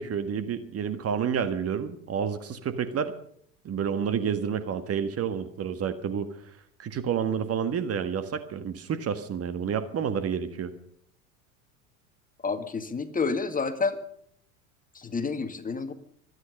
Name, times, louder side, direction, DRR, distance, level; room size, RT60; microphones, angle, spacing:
voice 1, 0.0-3.1 3.7-6.3 6.8-10.7, right 7 dB, 35° right, 10 dB, 1.6 m, -29 dB
voice 2, 12.4-14.0 14.9-15.9, left 4 dB, 20° left, 8 dB, 1.9 m, -29 dB
25.0 x 9.9 x 5.4 m, 0.65 s
hypercardioid pair, 85°, 42 cm